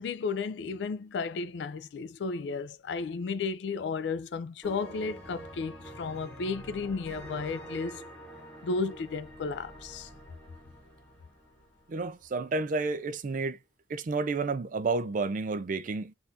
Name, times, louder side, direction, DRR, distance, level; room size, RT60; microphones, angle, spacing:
voice 1, 0.0-8.0 8.6-10.1, left 4 dB, 70° left, 0.4 m, -33 dB
sound 1, 4.6-12.3, right 1 dB, 5° left, 1.0 m, -46 dB
voice 2, 11.9-13.6 13.9-16.1, right 3 dB, 50° right, 0.4 m, -30 dB
3.7 x 2.5 x 2.7 m
head